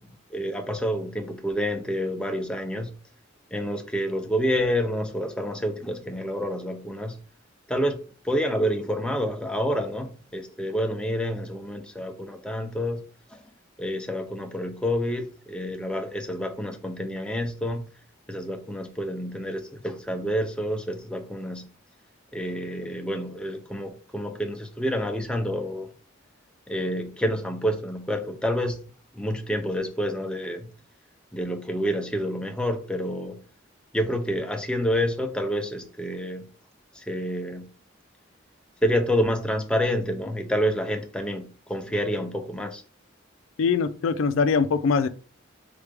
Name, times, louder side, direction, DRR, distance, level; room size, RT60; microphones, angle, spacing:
voice 1, 0.3-2.9 3.5-7.2 7.7-13.0 13.3-13.4 13.8-17.8 18.3-21.7 22.3-25.9 26.7-28.8 29.1-30.7 31.3-33.4 33.9-36.5 36.9-37.7 38.8-42.8, equal, 5° left, 0.5 m, -28 dB
voice 2, 43.6-45.1, left 5 dB, 80° left, 0.4 m, -22 dB
3.7 x 3.4 x 3.3 m
head